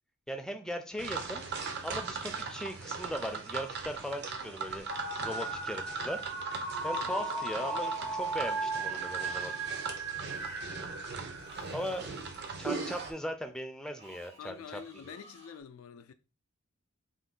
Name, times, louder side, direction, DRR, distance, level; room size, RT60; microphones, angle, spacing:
voice 1, 0.3-1.5 1.8-4.9 5.2-6.2 6.8-9.5 11.7-12.1 12.6-15.1, equal, 5° left, 0.3 m, -38 dB
sound 1, 1.0-13.1, right 5 dB, 50° right, 0.6 m, -39 dB
sound 2, 4.9-12.1, right 3 dB, 85° right, 0.8 m, -36 dB
Screech, 7.7-15.6, right 2 dB, 70° right, 1.9 m, -57 dB
voice 2, 14.4-16.1, left 7 dB, 90° left, 0.3 m, -46 dB
4.4 x 2.3 x 3.7 m
head